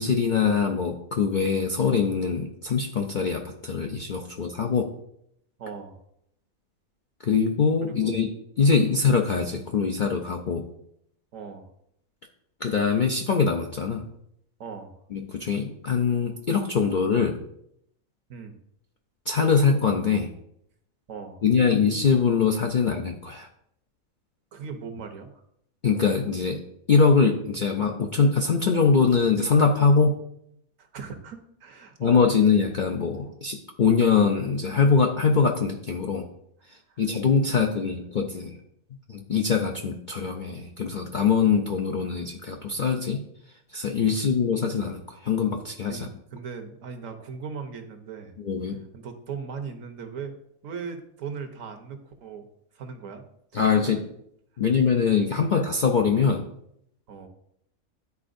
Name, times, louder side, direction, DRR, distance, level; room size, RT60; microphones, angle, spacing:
voice 1, 0.0-4.9 7.2-8.3 8.6-10.7 12.6-14.0 15.1-17.4 19.3-20.3 21.4-23.5 25.8-26.6 26.9-30.2 32.0-36.3 37.0-38.6 39.1-43.2 43.7-46.1 48.4-48.8 53.5-54.0 54.6-56.5, left 5 dB, 60° left, 2 dB, 0.5 m, -23 dB
voice 2, 5.6-6.0 7.8-8.1 11.3-11.7 14.6-15.0 18.3-18.5 21.1-21.4 24.5-25.4 30.8-32.2 36.9-37.0 37.4-37.9 44.1-44.2 45.9-48.4 48.9-50.4 50.6-52.5 52.7-53.2 53.5-54.0 57.1-57.3, right 6 dB, 70° right, 6 dB, 1.2 m, -39 dB
11.0 x 4.3 x 2.6 m, 0.73 s
omnidirectional pair, 1.5 m